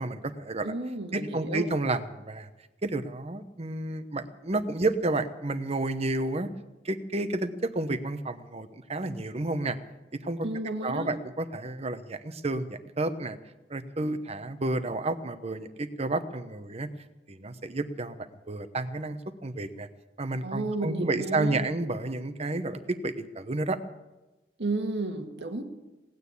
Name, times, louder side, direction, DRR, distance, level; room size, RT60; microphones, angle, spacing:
voice 1, 0.0-0.7 1.1-2.5 2.8-6.5 6.8-9.8 10.2-10.5 10.8-13.4 13.7-16.9 17.3-18.2 18.5-19.9 20.2-23.8, right 2 dB, 35° right, 10 dB, 1.0 m, -31 dB
voice 2, 0.6-1.7 10.4-11.1 20.4-21.7 24.6-25.6, right 2 dB, 80° right, 5 dB, 1.9 m, -32 dB
18.5 x 9.5 x 8.4 m, 1.1 s
head